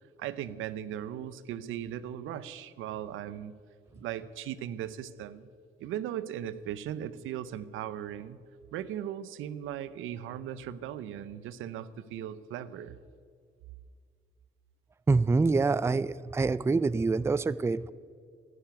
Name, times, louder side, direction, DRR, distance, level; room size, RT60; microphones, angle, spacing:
voice 1, 0.2-3.5 3.9-5.5 5.8-8.4 8.7-13.0, right 10 dB, 85° right, 15 dB, 0.7 m, -38 dB
voice 2, 15.1-17.9, right 3 dB, 15° right, 17 dB, 0.4 m, -26 dB
11.5 x 11.0 x 9.2 m, 2.3 s
cardioid pair, 90°, 20 cm